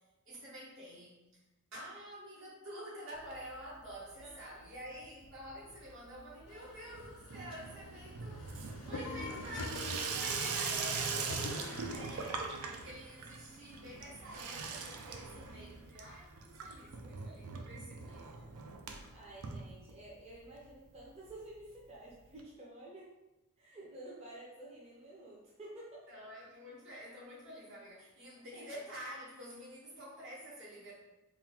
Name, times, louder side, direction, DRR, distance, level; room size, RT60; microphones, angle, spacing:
voice 1, 0.3-1.2 1.7-8.6 8.9-18.4 26.1-30.9, equal, 55° right, -7 dB, 1.1 m, -48 dB
Water tap faucet / Sink (filling or washing), 3.1-3.9 4.2-4.8 5.0-20.3 20.7-20.8 20.9-21.0 21.3-21.4 22.4-22.5, right 5 dB, 75° right, 0.5 m, -42 dB
voice 2, 4.2-4.6 6.5-6.7 8.8-9.0 18.1-18.2 19.1-23.1 23.6-26.1 28.5-28.6, right 1 dB, 30° right, -6 dB, 0.7 m, -51 dB
sound 1, 6.5-12.0, left 3 dB, 85° left, 0.5 m, -46 dB
3.7 x 2.3 x 4.2 m, 1.0 s
head